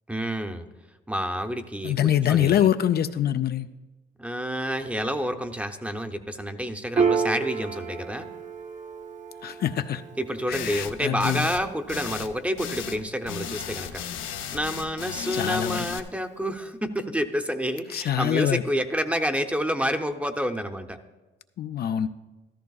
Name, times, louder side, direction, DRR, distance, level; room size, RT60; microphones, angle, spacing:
voice 1, 0.1-0.7 1.1-2.0 2.3-2.7 4.2-8.3 10.2-14.0 14.5-21.0, equal, 5° right, 7 dB, 0.7 m, -29 dB
voice 2, 1.8-3.7 9.4-10.0 10.5-11.5 15.3-15.9 17.9-18.6 21.6-22.1, left 10 dB, 55° left, 9 dB, 0.4 m, -24 dB
Piano, 7.0-13.9, right 5 dB, 40° right, 0.8 m, -32 dB
sound 1, 10.5-10.9 11.2-11.6 11.9-12.3 12.6-13.0 13.3-16.0, left 8 dB, 85° left, 0.7 m, -35 dB
13.5 x 13.0 x 2.3 m, 1.2 s
cardioid pair, 90°, 20 cm